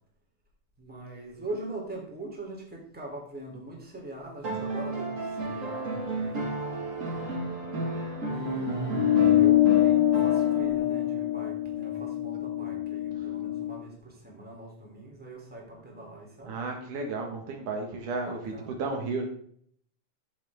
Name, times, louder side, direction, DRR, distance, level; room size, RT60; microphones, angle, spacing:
voice 1, 0.8-6.6 8.2-16.6 18.1-18.8, right 1 dB, 5° right, -1 dB, 2.8 m, -41 dB
sound 1, 4.4-10.9 12.3-12.4, right 2 dB, 30° right, 1.7 m, -33 dB
sound 2, 8.9-13.7, left 13 dB, 70° left, 2.2 m, -24 dB
voice 2, 16.4-19.3, right 3 dB, 70° right, 2 dB, 3.1 m, -33 dB
14.5 x 7.2 x 3.6 m, 0.63 s
omnidirectional pair, 3.8 m